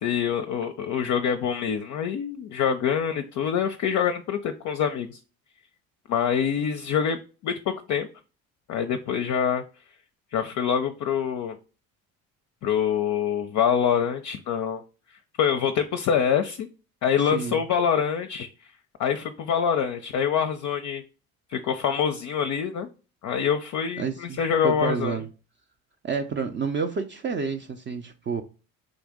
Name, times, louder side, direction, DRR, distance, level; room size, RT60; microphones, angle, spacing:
voice 1, 0.0-5.2 6.1-8.1 8.7-9.6 10.3-11.6 12.6-14.8 15.4-16.7 17.0-18.5 19.0-21.0 21.5-22.9 23.2-25.2, left 7 dB, 45° left, 0.5 m, -25 dB
voice 2, 17.3-17.6 24.0-25.3 26.0-28.4, right 5 dB, 30° right, 0.4 m, -29 dB
3.9 x 2.5 x 3.5 m
hypercardioid pair, 60°, 42 cm